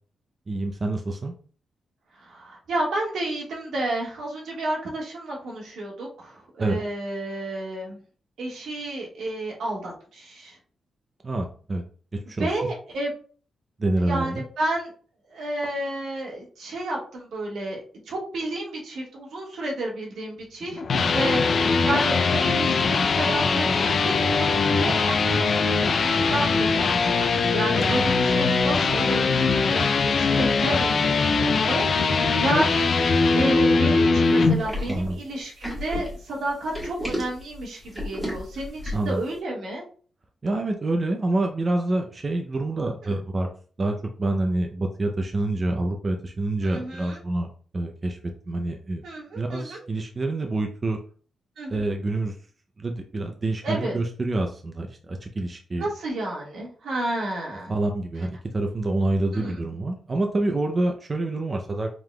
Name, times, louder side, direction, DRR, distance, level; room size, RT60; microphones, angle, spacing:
voice 1, 0.5-1.3 6.6-6.8 11.2-11.8 12.3-12.5 13.8-14.4 27.7-28.1 34.9-35.2 38.9-39.2 40.4-43.5 43.8-47.5 47.7-48.2 48.5-49.0 49.3-51.0 51.7-52.3 52.8-55.9 57.7-61.9, right 2 dB, 25° right, 3 dB, 0.5 m, -27 dB
voice 2, 2.2-8.0 8.4-10.6 12.4-13.1 14.0-14.9 15.3-20.8 21.1-39.8 43.0-43.2 46.6-47.2 49.0-49.8 51.6-51.8 53.6-54.0 55.8-57.7 59.3-59.6, right 1 dB, 80° right, -2 dB, 1.5 m, -31 dB
sound 1, 20.6-34.5, left 4 dB, 45° left, 0.4 m, -21 dB
sound 2, 34.4-39.2, left 1 dB, 5° right, 1.5 m, -33 dB
4.8 x 3.7 x 2.2 m, 0.42 s
wide cardioid pair, 150°, 0 cm